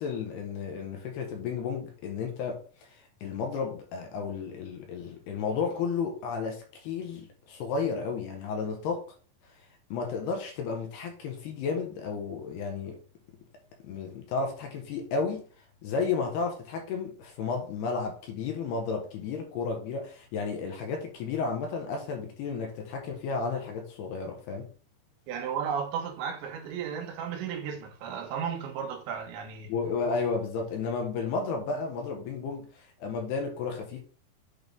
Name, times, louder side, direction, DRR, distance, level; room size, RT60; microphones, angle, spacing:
voice 1, 0.0-9.1 9.9-13.0 13.8-15.4 15.8-24.7 29.7-34.0, left 5 dB, 70° left, 2.9 m, -32 dB
voice 2, 25.3-29.7, right 7 dB, 75° right, 3.4 m, -34 dB
8.3 x 3.7 x 5.3 m
omnidirectional pair, 5.4 m